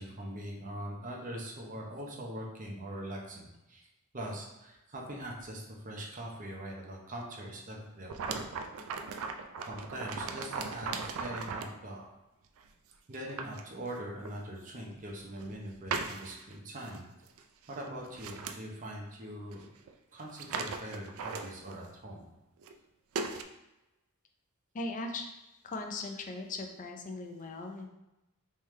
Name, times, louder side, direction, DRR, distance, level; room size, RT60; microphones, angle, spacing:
voice 1, 0.0-3.8 4.1-8.4 9.7-12.0 13.1-17.0 17.7-19.6 20.1-22.3, right 1 dB, 35° right, -1 dB, 0.8 m, -42 dB
sound 1, 8.1-11.8 12.6-12.7 13.1-13.6 14.2-14.3 15.1-15.5 15.9-16.5 16.9-17.0 17.3-17.4 17.7-18.6 19.5-19.6 19.9-20.0 20.2-21.9 22.6-22.7 23.1-23.4, right 4 dB, 65° right, 0.3 m, -38 dB
voice 2, 24.7-25.3 25.6-27.9, left 2 dB, 35° left, 4 dB, 0.5 m, -38 dB
3.6 x 3.2 x 3.2 m, 0.95 s
head